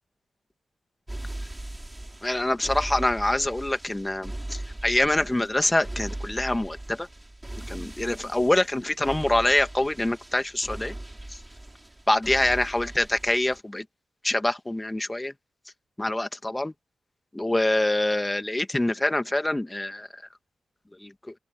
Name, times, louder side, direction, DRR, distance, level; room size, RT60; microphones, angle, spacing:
sound 1, 1.1-13.6, right 1 dB, 15° right, 6.7 m, -39 dB
voice 1, 2.2-7.1 7.7-10.9 11.3-11.4 12.1-13.8 14.2-15.3 16.0-16.7 17.3-20.1 21.0-21.1, left 1 dB, 15° left, 1.9 m, -25 dB
open air
cardioid pair, 65°, 0 cm